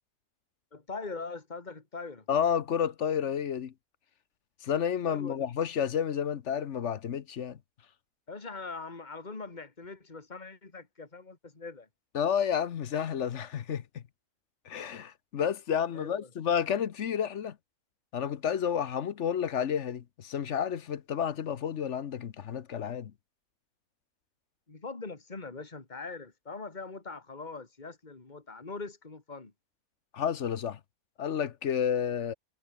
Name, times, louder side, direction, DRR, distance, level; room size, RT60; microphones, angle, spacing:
voice 1, 0.7-2.2 5.0-5.5 8.3-11.9 15.9-16.3 24.7-29.5, left 4 dB, 30° left, 2.6 m, -42 dB
voice 2, 2.3-3.7 4.6-7.6 12.1-14.0 14.7-17.5 18.1-23.1 30.1-30.8 31.2-32.3, left 8 dB, 55° left, 1.1 m, -30 dB
omnidirectional pair, 1.5 m